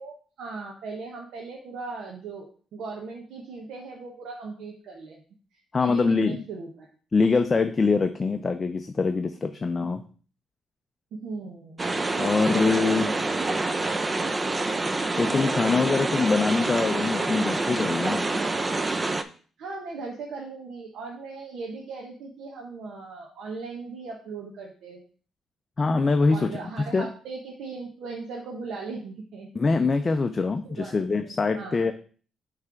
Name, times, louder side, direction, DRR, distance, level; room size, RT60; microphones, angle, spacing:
voice 1, 0.0-5.2 5.8-6.9 11.1-11.9 12.5-13.4 19.6-25.0 26.3-29.5 30.6-30.9 31.2-31.8, right 4 dB, 75° right, -1 dB, 1.1 m, -38 dB
voice 2, 5.7-6.4 7.1-10.0 12.2-13.1 15.2-18.2 25.8-26.6 26.9-27.1 29.5-31.9, left 4 dB, 30° left, 7 dB, 0.5 m, -24 dB
sound 1, 11.8-19.2, right 2 dB, 25° right, 0.5 m, -27 dB
5.9 x 3.3 x 5.8 m, 0.41 s
cardioid pair, 90°, 0 cm